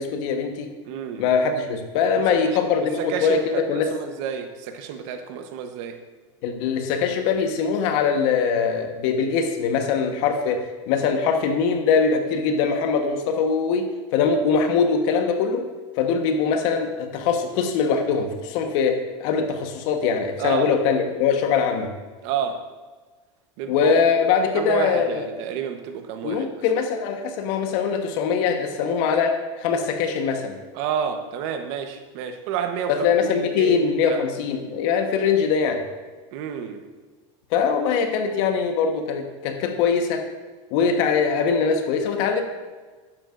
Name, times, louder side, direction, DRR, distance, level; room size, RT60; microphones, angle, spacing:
voice 1, 0.0-0.7 1.2-3.9 6.4-13.9 14.1-15.7 16.0-21.9 23.7-25.3 26.2-30.6 32.9-35.8 37.5-40.3 40.7-42.4, left 6 dB, 65° left, 5 dB, 1.3 m, -22 dB
voice 2, 0.9-1.2 2.1-2.6 3.0-6.0 20.4-20.7 22.2-22.6 23.6-23.9 24.5-26.5 30.7-34.2 36.3-36.8 40.9-41.1, right 7 dB, 65° right, 6 dB, 1.1 m, -30 dB
12.0 x 8.9 x 2.6 m, 1.3 s
supercardioid pair, 120°, 17 cm